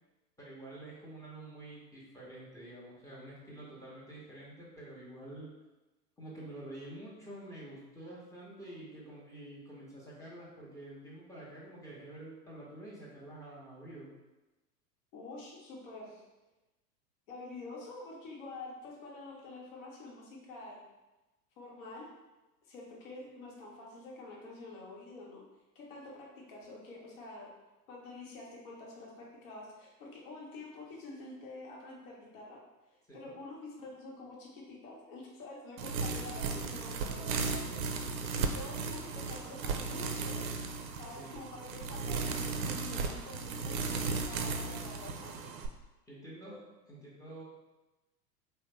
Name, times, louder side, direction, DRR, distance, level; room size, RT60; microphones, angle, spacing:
voice 1, 0.4-5.5 6.2-14.1 33.1-33.3 36.5-37.0 41.1-41.5 46.1-47.4, right 1 dB, 5° left, -6 dB, 0.8 m, -48 dB
voice 2, 15.1-16.2 17.3-20.8 21.6-22.0 22.6-25.4 25.7-27.5 27.9-32.6 32.9-40.5 41.0-45.5, left 2 dB, 50° left, -3 dB, 1.0 m, -47 dB
sound 1, 35.8-45.7, right 4 dB, 55° right, 0.5 m, -35 dB
3.2 x 2.1 x 3.1 m, 1.1 s
figure-of-eight pair, 95°, 50 cm